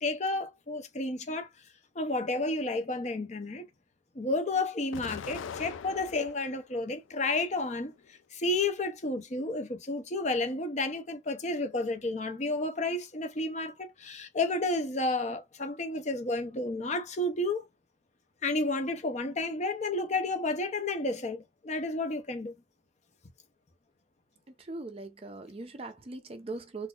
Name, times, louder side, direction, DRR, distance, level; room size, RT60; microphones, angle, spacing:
voice 1, 0.0-1.5 2.0-3.7 4.2-7.9 8.3-17.6 18.4-22.5, left 2 dB, 35° left, 0.6 m, -31 dB
Explosion, 4.9-6.6 7.1-8.0, left 6 dB, 80° left, 0.3 m, -42 dB
voice 2, 24.6-26.9, right 3 dB, 30° right, 0.5 m, -40 dB
3.9 x 2.5 x 2.4 m
head